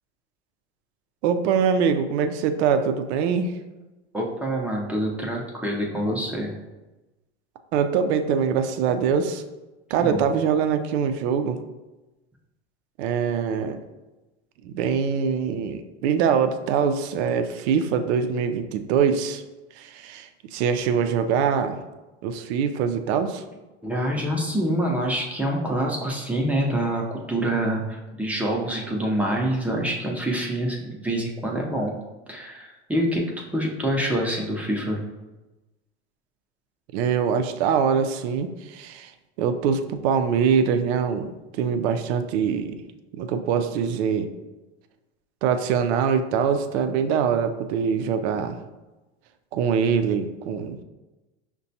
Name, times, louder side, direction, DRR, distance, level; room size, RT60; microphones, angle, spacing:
voice 1, 1.2-3.5 7.7-9.4 9.9-11.6 13.0-13.8 14.6-19.4 19.8-21.8 22.2-23.4 36.9-39.1 39.4-42.8 43.2-44.3 45.4-48.6 49.5-50.8, right 7 dB, 65° right, 8 dB, 0.5 m, -23 dB
voice 2, 4.1-6.5 10.0-10.2 23.8-32.0 32.3-33.2 33.5-35.0, right 1 dB, 5° right, -2 dB, 0.6 m, -26 dB
5.7 x 2.2 x 2.7 m, 1.1 s
hypercardioid pair, 95°, 35 cm